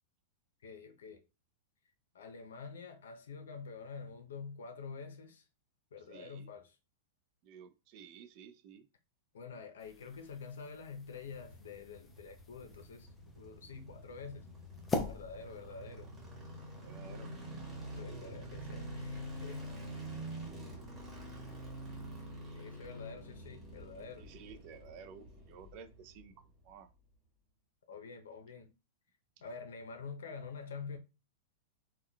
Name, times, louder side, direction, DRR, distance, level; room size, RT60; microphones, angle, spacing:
voice 1, 0.6-1.2 2.1-5.4 5.9-6.8 9.3-13.1 13.3-14.5 15.1-16.1 18.0-19.6 22.5-24.3 27.9-28.7 29.4-31.0, left 5 dB, 85° left, 0.6 m, -47 dB
voice 2, 6.1-6.5 7.4-8.9 16.8-17.3 21.3-21.4 22.5-22.6 24.2-26.9, right 6 dB, 45° right, 0.4 m, -53 dB
sound 1, 9.8-17.0, left 3 dB, 15° left, 0.5 m, -44 dB
sound 2, 11.2-26.4 26.7-26.8, right 1 dB, 20° right, 1.2 m, -47 dB
3.6 x 2.2 x 2.2 m
hypercardioid pair, 135°, 0 cm